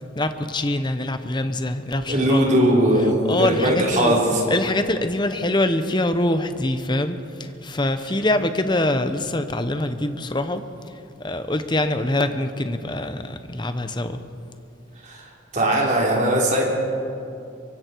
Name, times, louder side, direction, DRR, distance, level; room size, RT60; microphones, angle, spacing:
voice 1, 0.2-2.5 3.0-4.2 4.5-10.6 11.2-14.2, left 1 dB, 20° left, 9 dB, 0.9 m, -24 dB
voice 2, 2.1-4.4 15.0-15.3 15.5-16.6, right 1 dB, 35° right, -3 dB, 4.1 m, -19 dB
24.5 x 23.5 x 4.7 m, 2.6 s
head